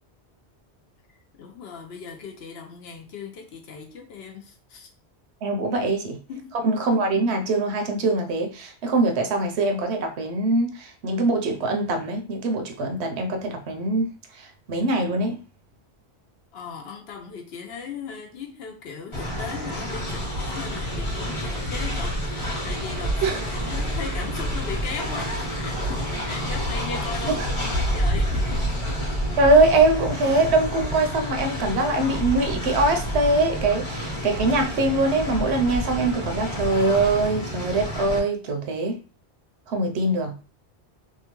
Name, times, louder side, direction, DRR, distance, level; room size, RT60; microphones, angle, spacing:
voice 1, 1.4-4.9 5.8-5.9 6.3-6.6 16.5-28.9, left 5 dB, 70° left, 0.8 m, -37 dB
voice 2, 5.4-6.1 6.6-15.4 23.2-23.4 27.2-27.4 29.4-38.9 39.7-40.4, right 2 dB, 75° right, 0.9 m, -23 dB
Train, 19.1-38.2, equal, 30° left, 0.9 m, -28 dB
2.8 x 2.2 x 2.9 m
omnidirectional pair, 1.1 m